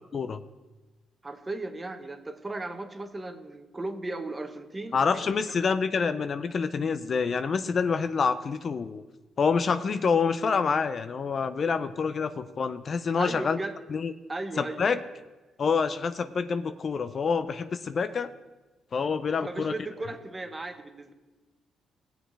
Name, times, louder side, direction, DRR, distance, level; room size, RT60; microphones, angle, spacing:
voice 1, 1.2-5.1 5.6-5.7 13.2-13.8 14.3-14.9 19.4-21.1, right 2 dB, 20° right, 6 dB, 1.1 m, -36 dB
voice 2, 4.9-9.0 9.4-13.6 13.9-14.1 14.6-15.0 15.6-18.3 18.9-19.7, left 5 dB, 45° left, 11 dB, 0.5 m, -27 dB
17.5 x 7.8 x 3.3 m, 1.2 s
cardioid pair, 90°, 0 cm